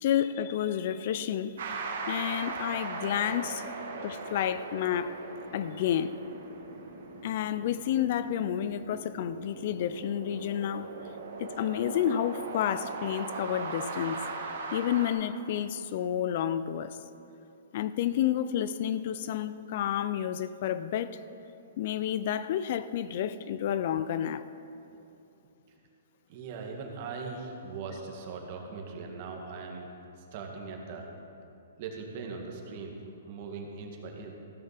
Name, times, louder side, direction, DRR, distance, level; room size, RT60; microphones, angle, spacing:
voice 1, 0.0-1.8 2.1-3.6 4.0-5.2 5.5-6.1 7.2-10.9 11.4-14.2 14.7-17.0 17.7-21.2 21.8-24.4, left 10 dB, 50° left, 14 dB, 0.4 m, -30 dB
sound 1, 1.6-15.1, right 3 dB, 70° right, 1.6 m, -39 dB
voice 2, 26.3-29.9 30.3-31.1 31.8-33.0 33.3-34.3, right 4 dB, 45° right, 1 dB, 1.7 m, -40 dB
15.0 x 6.6 x 5.8 m, 2.7 s
hypercardioid pair, 150°, 0 cm